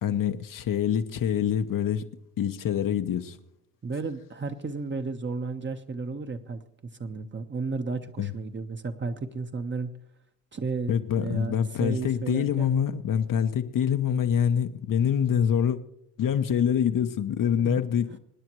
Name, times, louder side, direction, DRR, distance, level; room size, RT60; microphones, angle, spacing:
voice 1, 0.0-2.0 2.4-3.4 8.2-8.3 10.9-15.8 16.2-18.2, left 8 dB, 50° left, 1.0 m, -25 dB
voice 2, 3.8-6.6 7.0-9.9 10.5-12.7 17.6-17.8, right 4 dB, 25° right, 1.2 m, -33 dB
26.0 x 9.5 x 3.1 m
supercardioid pair, 65°, 43 cm